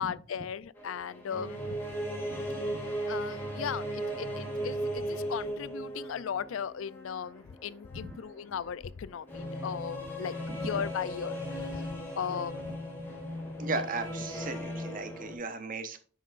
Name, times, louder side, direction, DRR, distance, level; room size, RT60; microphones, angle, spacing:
voice 1, 0.0-1.8 3.1-12.8 13.7-13.8, left 7 dB, 85° left, 0.4 m, -37 dB
sound 1, 0.8-15.4, equal, 10° left, 2.2 m, -37 dB
voice 2, 13.6-16.0, right 3 dB, 45° right, 1.0 m, -36 dB
9.3 x 5.6 x 2.5 m
head